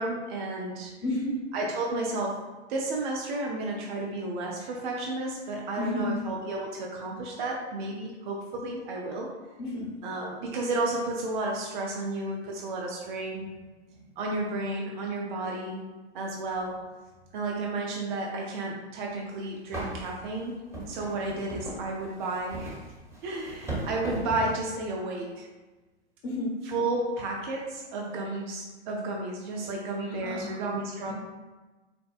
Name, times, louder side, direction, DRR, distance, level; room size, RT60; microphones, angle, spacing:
voice 1, 0.0-0.9 1.5-2.4 2.7-9.3 10.0-13.4 14.2-15.8 16.1-16.8 17.3-20.5 20.9-22.8 23.2-25.5 26.6-31.1, right 2 dB, 45° right, -1 dB, 0.5 m, -32 dB
voice 2, 1.0-1.4 5.8-6.1 9.6-9.9 13.9-14.0 26.2-26.5 30.2-30.6 31.0-31.1, left 1 dB, 35° left, -2 dB, 1.0 m, -31 dB
sound 1, 19.1-19.2 19.7-24.7, right 2 dB, 10° right, 1.0 m, -38 dB
4.2 x 2.1 x 2.4 m, 1.2 s
figure-of-eight pair, 100°, 34 cm